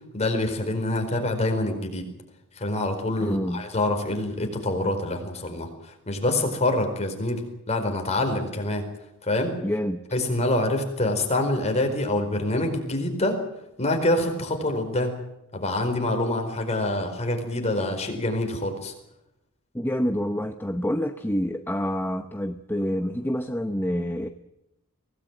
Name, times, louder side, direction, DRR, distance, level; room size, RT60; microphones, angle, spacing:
voice 1, 0.1-2.1 2.6-8.8 9.2-9.6 10.1-13.4 13.8-15.2 15.5-18.9, left 1 dB, 30° left, 4 dB, 4.6 m, -26 dB
voice 2, 3.2-3.6 9.6-10.0 19.7-24.3, equal, 10° left, 7 dB, 0.8 m, -27 dB
23.5 x 18.0 x 9.0 m, 0.87 s
head